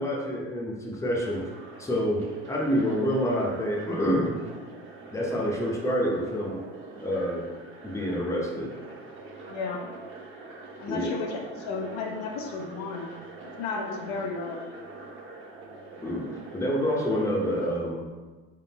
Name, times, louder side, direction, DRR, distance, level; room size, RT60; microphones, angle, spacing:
voice 1, 0.0-1.4 1.8-4.3 5.1-6.6 7.0-7.5 7.8-8.7 10.9-11.1 16.0-18.1, equal, 10° left, -2 dB, 0.8 m, -27 dB
sound 1, 1.2-17.8, right 2 dB, 40° right, 0.8 m, -44 dB
voice 2, 9.5-9.9 10.8-13.1 13.4-14.8, left 4 dB, 65° left, 1 dB, 0.7 m, -33 dB
3.6 x 3.3 x 2.9 m, 1.3 s
supercardioid pair, 90°, 31 cm